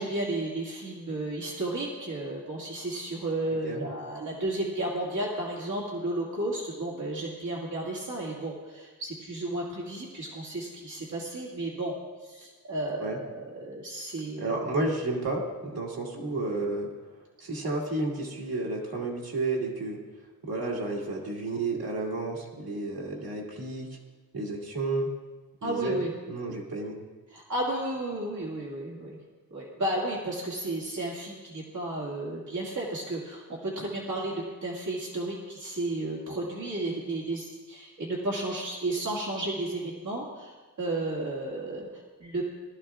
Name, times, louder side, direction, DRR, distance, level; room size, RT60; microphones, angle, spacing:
voice 1, 0.0-11.9 12.2-14.6 25.6-26.1 27.3-29.2 29.5-42.4, right 1 dB, 55° right, -4 dB, 2.1 m, -33 dB
voice 2, 14.4-16.9 17.4-20.0 20.4-23.9 24.3-25.1 25.6-26.0 26.3-27.0, right 2 dB, 80° right, -2 dB, 2.3 m, -31 dB
20.0 x 13.5 x 2.4 m, 1.3 s
wide cardioid pair, 160°, 35 cm